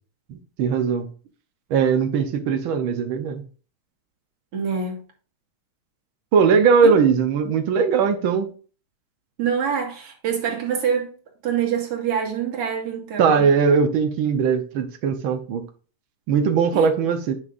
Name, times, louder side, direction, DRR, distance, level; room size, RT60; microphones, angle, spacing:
voice 1, 0.6-1.1 1.7-3.4 6.3-8.5 13.2-15.6 16.3-17.3, right 6 dB, 70° right, 1.2 m, -19 dB
voice 2, 4.5-5.0 6.8-6.9 9.4-11.2 11.4-13.5 16.7-16.9, right 7 dB, 55° right, 2.8 m, -25 dB
9.0 x 6.2 x 2.6 m
omnidirectional pair, 3.4 m